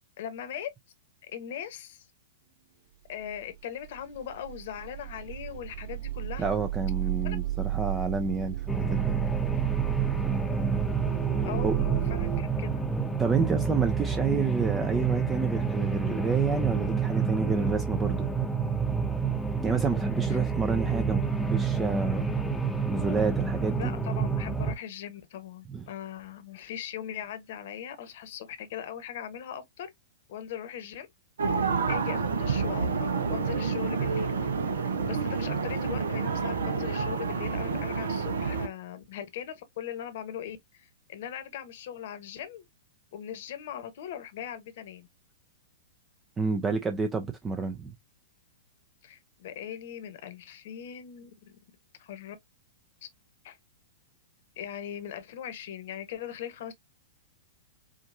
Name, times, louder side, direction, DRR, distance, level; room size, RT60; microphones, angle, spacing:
voice 1, 0.2-0.7 1.3-2.1 3.1-6.5 7.2-7.4 11.4-12.8 13.4-13.6 20.3-20.4 23.8-29.9 30.3-31.1 31.9-34.5 35.0-42.6 43.1-45.1 49.0-51.6 52.0-52.4 53.4-53.6 54.6-56.7, left 9 dB, 55° left, 1.1 m, -40 dB
sound 1, 3.3-3.6 3.8-12.4, right 14 dB, 50° right, 2.4 m, -33 dB
voice 2, 6.4-9.2 11.6-11.7 13.2-18.4 19.6-22.3 22.9-23.9 25.7-25.8 46.4-47.9, right 5 dB, 15° right, 0.6 m, -29 dB
sound 2, 8.7-24.7, right 5 dB, 5° left, 0.9 m, -29 dB
sound 3, 31.4-38.7, right 5 dB, 70° right, 0.9 m, -29 dB
5.0 x 2.7 x 2.6 m
figure-of-eight pair, 105°, 0 cm